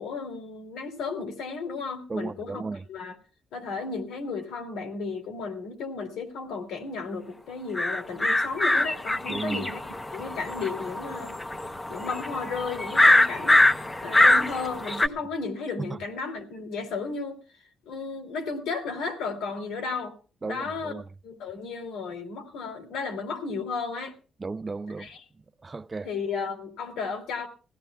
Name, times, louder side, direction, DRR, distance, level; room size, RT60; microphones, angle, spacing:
voice 1, 0.0-2.6 2.9-3.1 3.5-9.8 10.1-11.4 11.9-13.6 14.0-17.4 17.9-20.1 20.4-20.9 21.2-24.1 25.0-25.2 26.0-27.5, left 4 dB, 90° left, 2.7 m, -34 dB
voice 2, 2.1-2.8 9.3-9.6 15.9-16.0 20.4-21.0 24.4-25.1 25.6-26.1, right 3 dB, 25° right, 0.5 m, -34 dB
sound 1, 7.8-15.1, left 2 dB, 15° left, 0.8 m, -23 dB
21.0 x 16.0 x 2.3 m
cardioid pair, 90°, 0 cm